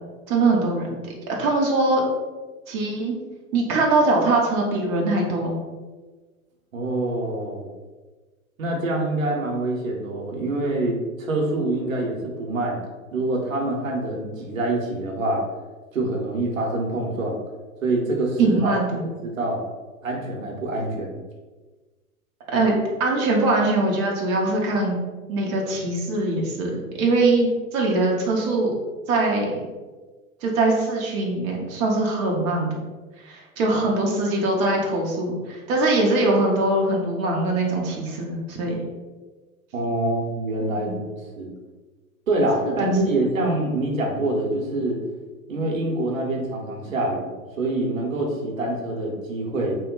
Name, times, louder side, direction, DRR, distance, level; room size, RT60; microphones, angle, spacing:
voice 1, 0.3-0.9 1.4-2.0 2.7-3.1 3.5-5.5 18.4-19.0 22.5-25.0 25.3-28.7 29.1-29.5 30.4-32.8 33.2-38.7 40.8-40.9 42.6-43.2, right 2 dB, 30° right, -2 dB, 0.6 m, -22 dB
voice 2, 6.7-7.7 8.6-12.8 13.1-15.4 15.9-17.4 17.8-18.8 19.2-19.6 20.0-21.2 39.7-41.1 41.4-41.5 42.3-45.0 45.5-47.3 47.6-49.8, right 2 dB, 70° right, -1 dB, 0.9 m, -25 dB
2.9 x 2.1 x 3.8 m, 1.3 s
figure-of-eight pair, 95°, 41 cm